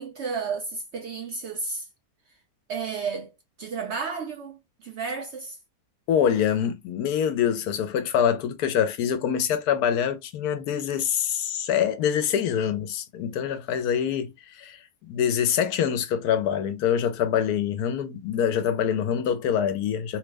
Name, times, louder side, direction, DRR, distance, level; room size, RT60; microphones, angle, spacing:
voice 1, 0.0-1.9 2.7-3.3 3.6-5.6, right 5 dB, 65° right, 0.7 m, -32 dB
voice 2, 6.1-20.2, left 8 dB, 80° left, 1.1 m, -25 dB
3.1 x 2.0 x 3.3 m
omnidirectional pair, 1.6 m